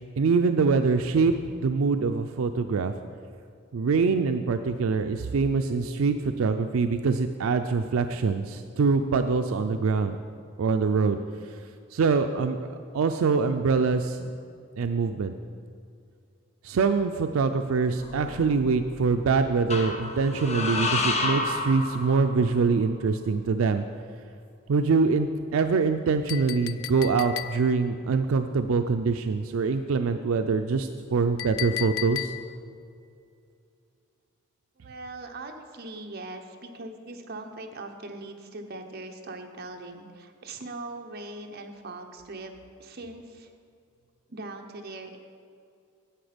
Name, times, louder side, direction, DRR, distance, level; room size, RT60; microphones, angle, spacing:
voice 1, 0.2-1.3 1.6-2.9 3.7-10.2 10.6-11.2 11.9-14.3 14.8-15.3 16.6-23.8 24.7-32.3, right 4 dB, 80° right, 8 dB, 0.4 m, -24 dB
sound 1, 18.0-18.8 19.7-22.6, left 3 dB, 30° left, 0.9 m, -30 dB
Chink clink, 26.3-27.9 31.4-32.7, left 14 dB, 80° left, 0.4 m, -35 dB
voice 2, 34.8-42.5 42.8-43.5 44.3-45.2, right 2 dB, 50° right, 3 dB, 0.9 m, -40 dB
10.0 x 7.8 x 5.1 m, 2.4 s
head